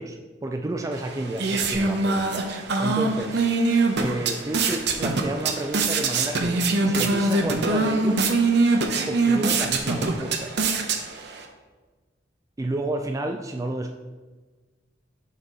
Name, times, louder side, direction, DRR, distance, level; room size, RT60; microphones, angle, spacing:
voice 1, 0.0-2.5 2.8-3.4 4.0-8.3 9.1-10.5 12.6-14.0, right 2 dB, 15° right, 4 dB, 0.3 m, -31 dB
sound 1, 0.9-11.4, right 3 dB, 60° right, 0.7 m, -24 dB
6.5 x 5.7 x 3.6 m, 1.3 s
head